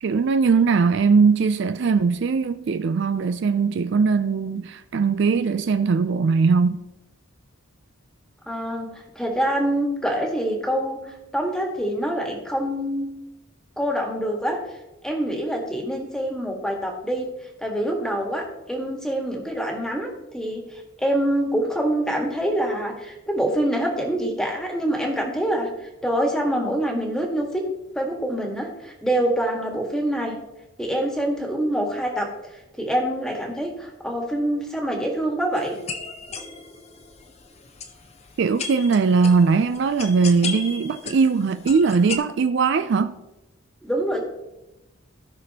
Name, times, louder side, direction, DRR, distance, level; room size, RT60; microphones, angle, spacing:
voice 1, 0.0-6.8 38.4-43.2, right 5 dB, 55° right, 0.3 m, -20 dB
voice 2, 8.5-13.1 13.8-14.6 15.0-17.3 17.6-25.7 26.0-27.6 27.9-30.4 30.8-32.3 32.8-35.7 43.8-44.2, right 1 dB, 5° left, 1.5 m, -25 dB
sound 1, 35.5-42.2, left 5 dB, 30° left, 0.7 m, -36 dB
17.0 x 5.9 x 2.8 m
head